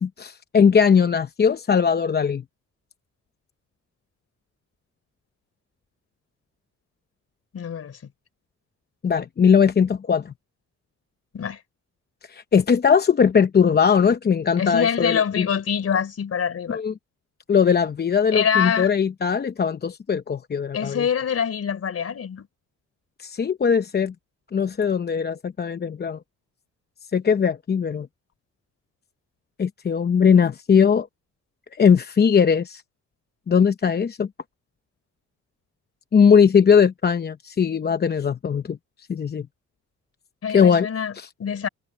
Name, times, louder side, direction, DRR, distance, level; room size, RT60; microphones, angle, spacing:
voice 1, 0.0-2.4 9.0-10.3 12.3-15.5 16.7-16.9 17.5-21.0 23.2-24.1 24.5-26.2 27.1-28.1 29.6-31.1 31.7-32.8 33.5-34.3 36.1-38.8 39.1-39.5 40.5-40.9 41.1-41.3, left 6 dB, 35° left, 0.8 m, -19 dB
voice 2, 7.5-8.0 11.3-11.6 14.6-16.8 18.3-18.9 20.7-22.5 40.4-41.1 41.4-41.7, left 7 dB, 50° left, 3.6 m, -25 dB
cardioid pair, 90°, 30 cm